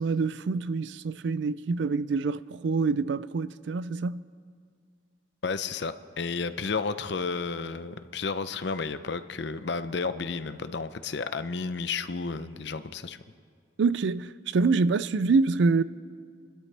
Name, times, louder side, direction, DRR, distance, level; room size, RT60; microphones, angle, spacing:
voice 1, 0.0-4.2 13.8-15.8, right 4 dB, 80° right, 0.4 m, -26 dB
voice 2, 5.4-13.2, left 4 dB, 70° left, 0.6 m, -32 dB
28.5 x 12.5 x 3.4 m
head